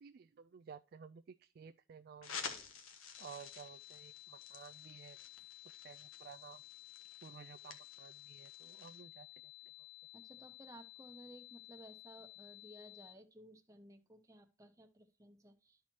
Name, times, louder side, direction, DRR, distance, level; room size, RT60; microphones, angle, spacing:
voice 1, 0.0-2.6 3.2-5.2 5.6-6.6 7.2-9.3, right 7 dB, 50° right, 0.3 m, -54 dB
sound 1, 2.2-9.0, left 6 dB, 80° left, 1.5 m, -51 dB
sound 2, 3.1-13.1, left 19 dB, 55° left, 0.8 m, -55 dB
voice 2, 10.1-15.9, right 1 dB, 15° right, 0.9 m, -57 dB
13.0 x 4.5 x 2.8 m
head